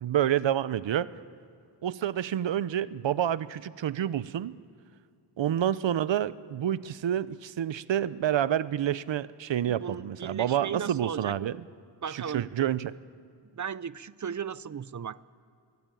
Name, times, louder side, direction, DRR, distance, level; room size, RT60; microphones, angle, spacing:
voice 1, 0.0-1.1 1.8-4.5 5.4-11.6 12.1-13.0, right 10 dB, 75° right, 17 dB, 0.8 m, -28 dB
voice 2, 9.7-11.3 12.0-12.5 13.5-15.2, right 7 dB, 40° right, 18 dB, 0.6 m, -36 dB
22.5 x 21.5 x 9.2 m, 2.4 s
wide cardioid pair, 90°, 44 cm